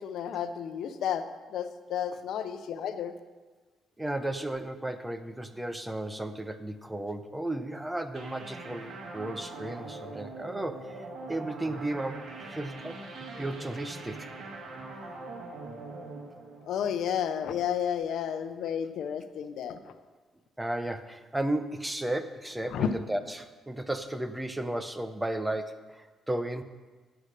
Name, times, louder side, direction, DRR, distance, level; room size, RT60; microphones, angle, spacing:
voice 1, 0.0-3.1 16.6-19.9 22.7-22.9, left 8 dB, 75° left, 10 dB, 0.7 m, -32 dB
voice 2, 4.0-13.0 13.4-14.3 20.6-26.6, right 1 dB, 10° right, 10 dB, 0.8 m, -34 dB
sound 1, 8.1-17.5, right 3 dB, 55° right, 1.9 m, -42 dB
9.8 x 7.9 x 6.7 m, 1.3 s
cardioid pair, 90°, 0 cm